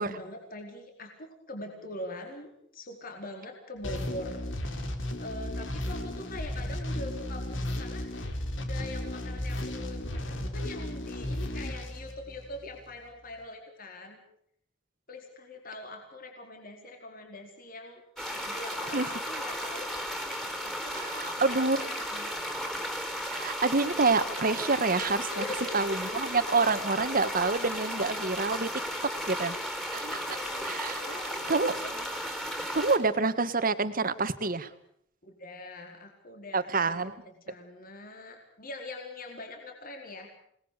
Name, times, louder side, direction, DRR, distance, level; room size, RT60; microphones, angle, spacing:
voice 1, 0.0-4.5 5.2-14.2 15.1-18.0 18.3-19.9 20.6-22.4 25.3-26.2 27.7-27.8 28.9-29.1 30.0-32.2 35.2-40.3, left 2 dB, 50° left, 3 dB, 4.5 m, -43 dB
sound 1, 3.8-12.7, left 1 dB, 90° left, 4.1 m, -34 dB
sound 2, 18.2-33.0, equal, 5° left, 4.6 m, -35 dB
voice 2, 20.9-21.9 23.3-25.4 25.7-28.7 29.0-29.5 29.9-30.2 30.6-31.0 31.5-31.7 32.7-34.7 36.5-37.1, right 3 dB, 50° right, 12 dB, 1.6 m, -27 dB
29.0 x 20.0 x 6.8 m, 0.68 s
head